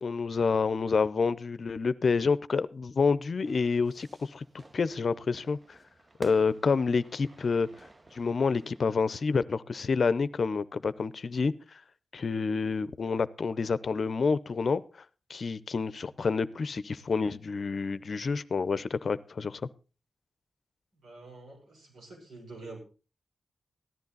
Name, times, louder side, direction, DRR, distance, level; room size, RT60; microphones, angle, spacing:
voice 1, 0.0-5.8 6.2-7.7 8.1-11.5 12.1-14.8 15.3-19.6, left 4 dB, 60° left, 16 dB, 0.6 m, -28 dB
Fire / Fireworks, 3.5-9.0, right 2 dB, 30° right, 0.9 m, -51 dB
voice 2, 21.0-22.8, right 3 dB, 85° right, -2 dB, 6.4 m, -47 dB
15.0 x 10.5 x 4.0 m, 0.33 s
cardioid pair, 55°, 0 cm